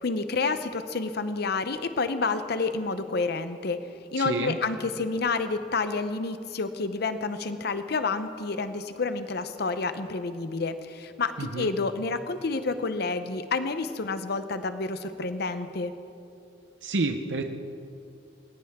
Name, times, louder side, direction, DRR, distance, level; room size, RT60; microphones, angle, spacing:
voice 1, 0.0-3.8 4.1-15.9, left 3 dB, 60° left, 10 dB, 0.7 m, -29 dB
voice 2, 4.1-4.6 11.4-11.7 16.8-17.4, right 3 dB, 80° right, 5 dB, 0.8 m, -29 dB
19.5 x 19.0 x 3.6 m, 2.5 s
head